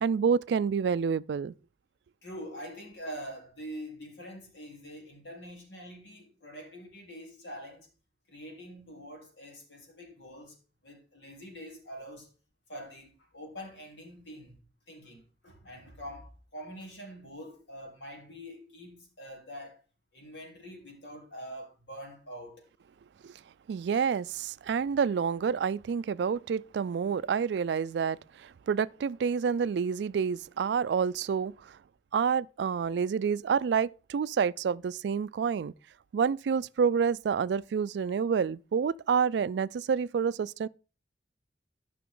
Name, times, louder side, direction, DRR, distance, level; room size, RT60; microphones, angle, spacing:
voice 1, 0.0-1.5 23.2-23.3 23.7-31.5 32.1-35.7 36.1-40.7, right 6 dB, 75° right, 0.3 m, -28 dB
voice 2, 2.2-7.9 8.3-10.6 10.8-12.3 12.7-19.8 20.1-22.7, equal, 85° left, 3.4 m, -45 dB
12.5 x 5.9 x 3.8 m
head